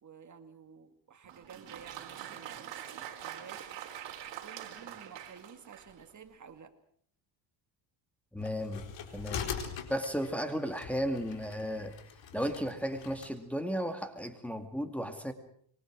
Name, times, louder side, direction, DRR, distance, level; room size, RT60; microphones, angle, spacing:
voice 1, 0.0-3.7 4.4-6.7, right 6 dB, 40° right, 8 dB, 2.5 m, -52 dB
Applause, 1.2-6.1, right 10 dB, 65° right, 4.1 m, -44 dB
voice 2, 8.3-9.5 9.9-12.0 12.3-15.3, equal, 5° left, 4 dB, 2.3 m, -34 dB
sound 1, 8.4-13.3, left 7 dB, 65° left, 4.4 m, -42 dB
26.5 x 23.5 x 6.3 m, 0.63 s
cardioid pair, 115°, 47 cm